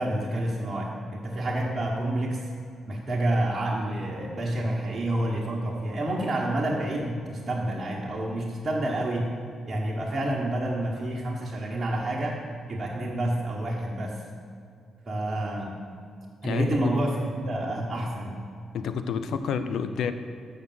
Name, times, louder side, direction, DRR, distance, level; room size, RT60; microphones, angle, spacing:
voice 1, 0.0-2.4 2.9-9.3 9.7-12.4 12.7-14.2 15.0-15.8 16.4-18.4, right 1 dB, 40° right, -6 dB, 1.4 m, -28 dB
voice 2, 16.4-16.9 18.7-20.1, left 6 dB, 75° left, 10 dB, 0.6 m, -29 dB
6.7 x 6.5 x 7.6 m, 2.4 s
supercardioid pair, 55°, 0 cm